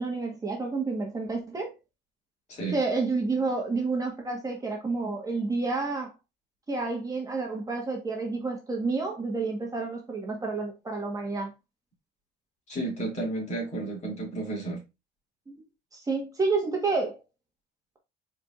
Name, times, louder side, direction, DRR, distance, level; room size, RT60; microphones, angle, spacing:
voice 1, 0.0-1.7 2.7-6.1 6.7-11.5 15.9-17.2, right 3 dB, 20° right, 1.3 m, -29 dB
voice 2, 2.5-2.8 12.7-14.8, right 2 dB, 40° left, 2.7 m, -32 dB
4.9 x 4.4 x 2.4 m
cardioid pair, 110°, 17 cm